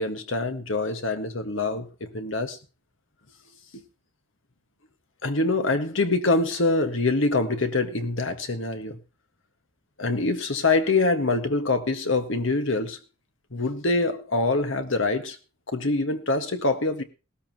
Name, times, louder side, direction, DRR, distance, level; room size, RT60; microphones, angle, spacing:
voice 1, 0.0-2.6 5.2-9.0 10.0-13.0 13.5-15.4 15.7-17.0, left 3 dB, 80° left, 1.6 m, -25 dB
18.5 x 13.0 x 3.0 m
head